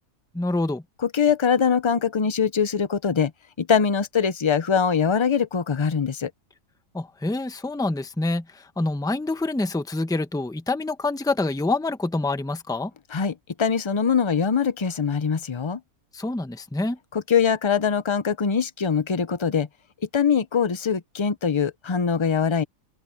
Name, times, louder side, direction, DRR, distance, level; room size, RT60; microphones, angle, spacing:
voice 1, 0.3-0.8 6.9-12.9 16.1-17.0, left 2 dB, 5° left, 0.8 m, -26 dB
voice 2, 1.0-3.3 3.6-6.3 13.1-15.8 17.1-19.7 20.1-22.6, left 6 dB, 35° left, 0.5 m, -22 dB
open air
omnidirectional pair, 1.5 m